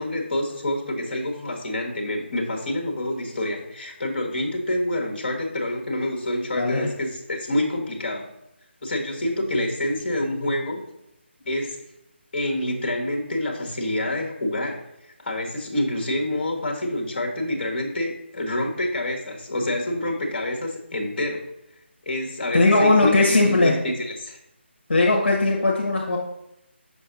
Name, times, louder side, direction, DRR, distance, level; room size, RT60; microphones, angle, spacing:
voice 1, 0.0-8.3 8.8-10.8 11.4-11.8 12.3-14.8 15.2-21.4 22.0-24.4, left 1 dB, 45° left, 1 dB, 1.4 m, -27 dB
voice 2, 6.6-6.9 22.5-23.7 24.9-26.2, left 2 dB, 60° left, -2 dB, 1.2 m, -19 dB
6.8 x 5.5 x 2.6 m, 0.87 s
figure-of-eight pair, 150°, 7 cm